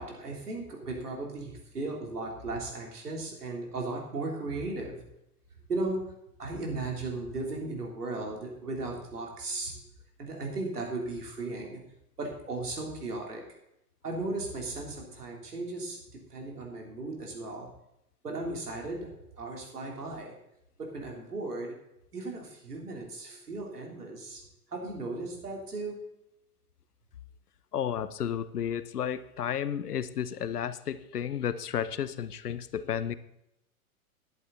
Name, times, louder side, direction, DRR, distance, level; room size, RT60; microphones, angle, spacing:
voice 1, 0.0-5.0 5.7-6.0 6.4-9.8 10.2-11.8 12.2-13.4 14.0-17.7 18.2-19.1 19.4-20.4 20.8-21.7 22.1-24.4 24.7-25.9, right 2 dB, 90° right, 0 dB, 3.6 m, -36 dB
voice 2, 27.7-33.1, left 9 dB, 85° left, 14 dB, 0.9 m, -32 dB
12.5 x 11.0 x 4.1 m, 0.82 s
hypercardioid pair, 110°, 45 cm